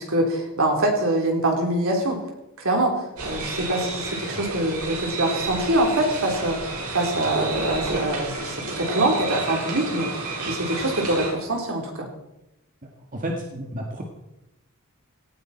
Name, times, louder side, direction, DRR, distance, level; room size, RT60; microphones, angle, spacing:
voice 1, 0.0-2.2 2.6-12.1, right 1 dB, 65° right, 1 dB, 4.0 m, -24 dB
sound 1, 3.2-11.3, right 2 dB, 85° right, 5.2 m, -30 dB
voice 2, 13.1-14.0, equal, 40° right, 0 dB, 1.9 m, -31 dB
18.0 x 15.5 x 4.5 m, 0.93 s
head